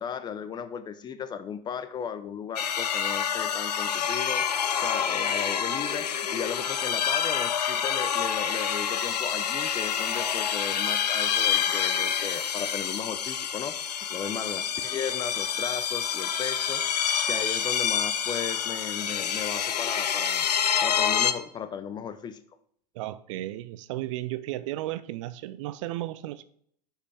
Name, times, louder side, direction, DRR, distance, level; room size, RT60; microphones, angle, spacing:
voice 1, 0.0-4.5 4.8-13.8 14.1-16.8 17.3-22.4, left 7 dB, 20° left, 0.6 m, -36 dB
sound 1, 2.6-21.3, left 8 dB, 75° left, 0.7 m, -27 dB
voice 2, 22.9-26.4, right 15 dB, 50° right, 0.5 m, -34 dB
9.7 x 5.6 x 3.5 m
figure-of-eight pair, 90°, 21 cm